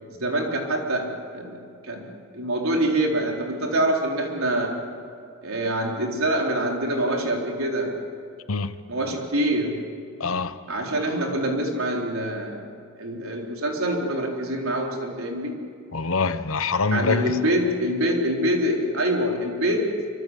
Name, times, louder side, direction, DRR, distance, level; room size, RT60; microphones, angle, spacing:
voice 1, 0.2-2.1 2.3-4.8 5.4-8.0 8.9-9.8 10.7-12.6 13.0-15.6 16.9-20.0, right 1 dB, 80° right, 4.4 m, -25 dB
voice 2, 10.2-10.6 15.9-17.4, left 4 dB, 75° left, 1.1 m, -24 dB
25.5 x 25.5 x 8.4 m
head